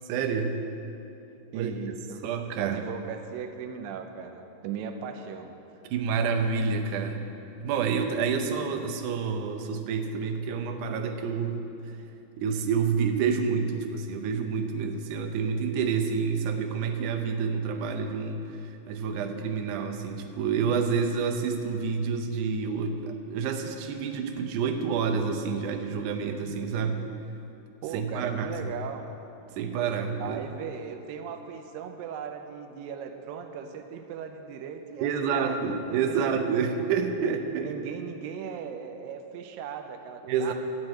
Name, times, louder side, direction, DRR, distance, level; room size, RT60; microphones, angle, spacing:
voice 1, 0.1-0.6 1.5-1.7 2.2-2.8 5.8-7.3 7.6-12.0 12.4-27.0 27.9-28.7 29.6-30.4 35.0-37.8 40.3-40.5, right 6 dB, 75° right, 5 dB, 2.2 m, -28 dB
voice 2, 1.5-2.3 2.5-5.6 27.8-29.1 30.2-36.3 37.6-40.5, right 7 dB, 90° right, 6 dB, 2.4 m, -38 dB
12.0 x 6.0 x 8.6 m, 2.8 s
omnidirectional pair, 3.9 m